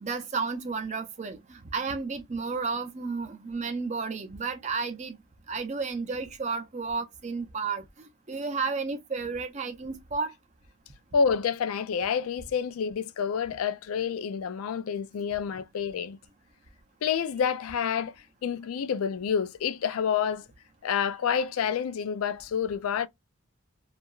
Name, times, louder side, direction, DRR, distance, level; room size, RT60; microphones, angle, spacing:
voice 1, 0.0-5.2 5.5-7.8 8.3-10.3, right 4 dB, 35° right, 0.5 m, -32 dB
voice 2, 11.1-16.2 17.0-18.1 18.4-20.4 20.8-23.1, left 7 dB, 85° left, 0.4 m, -28 dB
2.8 x 2.3 x 2.3 m
head